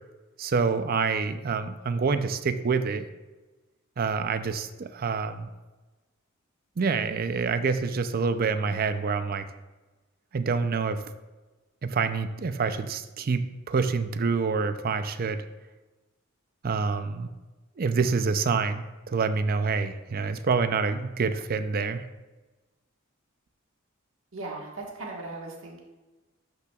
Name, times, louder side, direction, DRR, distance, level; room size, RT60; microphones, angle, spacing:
voice 1, 0.4-3.0 4.0-5.5 6.8-9.4 10.3-11.0 11.8-15.4 16.6-17.3 17.8-22.1, right 4 dB, 45° right, 10 dB, 0.4 m, -27 dB
voice 2, 24.3-25.8, right 2 dB, 65° right, -2 dB, 1.5 m, -38 dB
12.0 x 5.8 x 2.3 m, 1.2 s
head